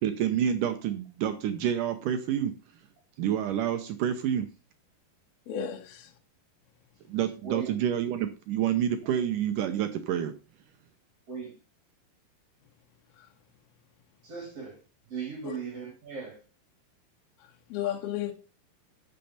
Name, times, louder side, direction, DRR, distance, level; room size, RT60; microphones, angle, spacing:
voice 1, 0.0-2.5 3.2-4.5 7.1-10.3, right 9 dB, 75° right, 2.1 m, -28 dB
voice 2, 5.5-6.1 13.2-13.3 15.4-15.6 17.7-18.3, left 10 dB, 80° left, 3.0 m, -33 dB
voice 3, 14.2-14.8 15.1-16.4, right 6 dB, 40° right, 3.3 m, -37 dB
12.0 x 6.8 x 4.3 m
omnidirectional pair, 4.4 m